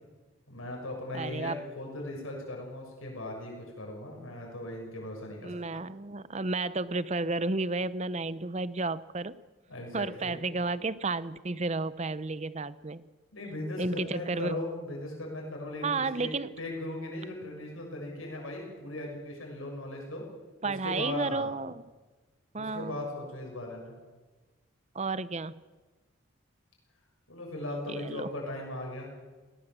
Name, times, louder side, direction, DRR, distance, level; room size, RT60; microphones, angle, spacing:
voice 1, 0.5-5.6 9.7-10.4 13.3-20.2 20.6-21.5 22.6-23.9 27.3-29.1, left 1 dB, 80° left, 0 dB, 6.6 m, -38 dB
voice 2, 1.1-1.6 5.4-9.4 9.9-13.0 13.8-14.6 15.8-16.5 20.6-21.8 22.5-23.0 24.9-25.6 27.9-28.3, right 3 dB, 30° right, 17 dB, 0.7 m, -32 dB
20.0 x 18.0 x 7.5 m, 1.2 s
head